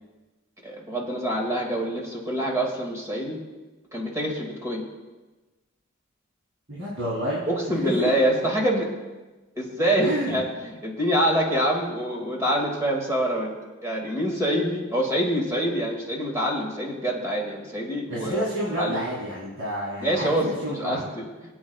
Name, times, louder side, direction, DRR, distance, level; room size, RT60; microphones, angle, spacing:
voice 1, 0.6-3.4 3.9-4.8 7.5-8.9 9.6-13.5 13.8-18.5 18.8-19.1 20.0-21.2, equal, 15° right, -1 dB, 2.1 m, -26 dB
voice 2, 6.7-8.1 10.0-10.4 18.1-21.0, equal, 60° right, -6 dB, 3.2 m, -29 dB
24.0 x 8.7 x 2.4 m, 1.2 s
head